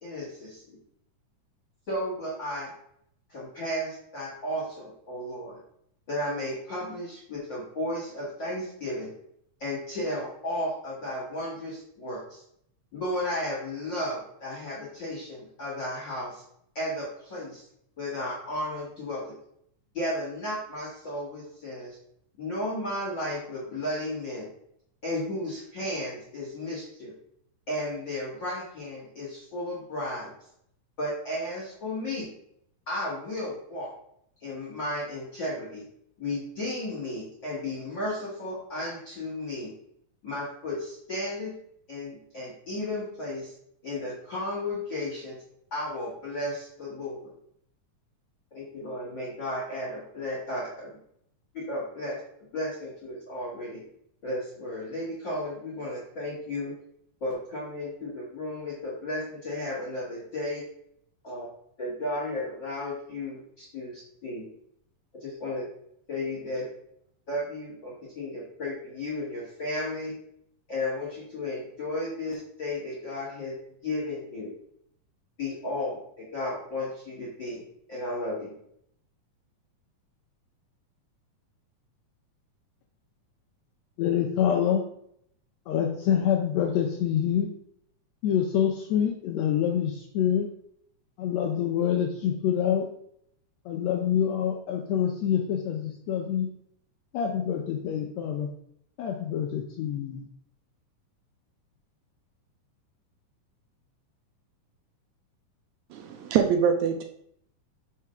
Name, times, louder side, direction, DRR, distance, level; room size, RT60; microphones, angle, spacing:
voice 1, 0.0-0.8 1.9-2.7 3.3-5.6 6.1-9.1 9.6-12.4 12.9-16.4 16.8-17.7 18.0-19.3 19.9-22.0 22.4-24.5 25.0-27.1 27.7-30.3 31.0-32.3 32.9-33.9 34.4-35.8 36.2-39.7 40.2-41.5 41.9-43.5 43.8-45.4 45.7-47.2 48.5-51.0 51.5-52.2 52.5-53.8 54.2-56.7 57.2-60.6 61.2-61.5 61.8-64.4 65.2-65.7 66.1-66.7 67.3-70.1 70.7-73.5 73.8-74.5 75.4-77.6 77.9-78.5, left 1 dB, 45° left, -6 dB, 1.9 m, -34 dB
voice 2, 84.0-84.8 85.7-87.5 88.2-90.5 91.2-92.9 93.6-96.5 97.1-98.5 99.0-100.3, left 9 dB, 80° left, 2 dB, 1.6 m, -26 dB
voice 3, 105.9-107.0, right 7 dB, 80° right, 5 dB, 1.7 m, -24 dB
4.8 x 4.5 x 5.6 m, 0.70 s
omnidirectional pair, 3.7 m